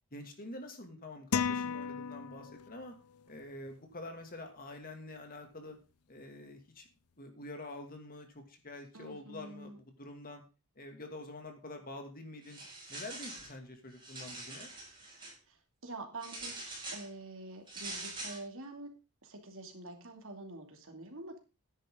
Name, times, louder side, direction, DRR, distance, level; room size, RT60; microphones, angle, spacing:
voice 1, 0.1-2.9 3.3-5.8 6.1-6.9 7.2-10.4 10.8-12.6 12.9-14.7, left 2 dB, 40° left, 5 dB, 2.4 m, -47 dB
sound 1, 1.3-2.8, left 6 dB, 80° left, 0.6 m, -34 dB
voice 2, 8.9-9.8 15.5-15.6 15.8-18.9 19.2-21.4, right 2 dB, 60° right, 4 dB, 2.6 m, -46 dB
sound 2, 12.4-13.5 13.9-15.3 16.2-17.1 17.7-18.4, right 2 dB, 20° right, 6.1 m, -44 dB
13.0 x 10.0 x 3.8 m, 0.30 s
head